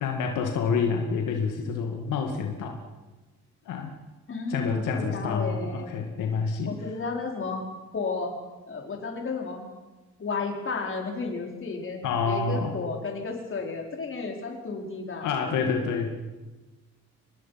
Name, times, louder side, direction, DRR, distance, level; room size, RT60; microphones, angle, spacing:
voice 1, 0.0-2.8 3.7-4.0 4.5-6.8 12.0-12.7 15.2-16.1, left 5 dB, 90° left, 3 dB, 2.2 m, -28 dB
voice 2, 4.3-5.9 6.7-7.7 7.9-8.4 8.7-9.7 10.2-15.3, left 4 dB, 45° left, 1 dB, 4.8 m, -33 dB
25.0 x 20.0 x 5.9 m, 1.2 s
cardioid pair, 90°, 30 cm